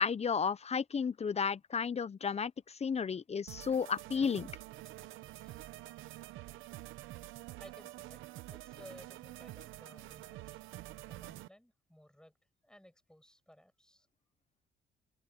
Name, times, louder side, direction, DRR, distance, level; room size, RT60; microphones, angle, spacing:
voice 1, 0.0-4.5, left 6 dB, 35° left, 0.8 m, -33 dB
sound 1, 3.5-11.5, right 16 dB, 90° right, 0.7 m, -48 dB
voice 2, 7.6-8.2 8.5-10.6 11.1-12.3 12.6-14.1, equal, 5° left, 6.1 m, -58 dB
cardioid pair, 90°, 20 cm